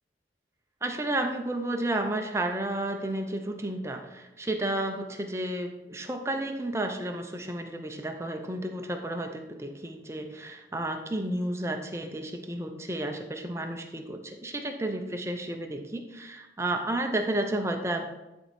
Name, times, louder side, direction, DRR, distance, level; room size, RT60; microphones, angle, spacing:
voice 1, 0.8-18.0, right 1 dB, 15° right, 5 dB, 0.7 m, -32 dB
10.5 x 4.5 x 4.3 m, 0.98 s
head